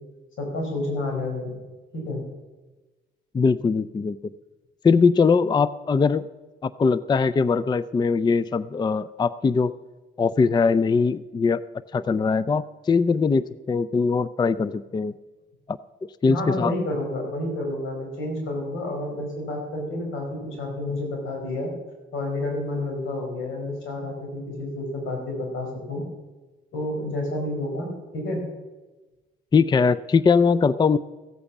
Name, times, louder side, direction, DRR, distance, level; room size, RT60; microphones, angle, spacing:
voice 1, 0.4-1.5 1.9-2.2 16.3-21.7 22.1-26.0 26.7-28.4, left 1 dB, 85° left, 1 dB, 4.7 m, -30 dB
voice 2, 3.3-4.2 4.8-6.3 6.6-9.7 10.2-11.6 11.9-15.1 15.7-15.8 16.2-16.7 29.5-31.0, left 5 dB, 20° left, 17 dB, 0.4 m, -21 dB
15.0 x 8.7 x 7.1 m, 1.2 s
cardioid pair, 90°, 20 cm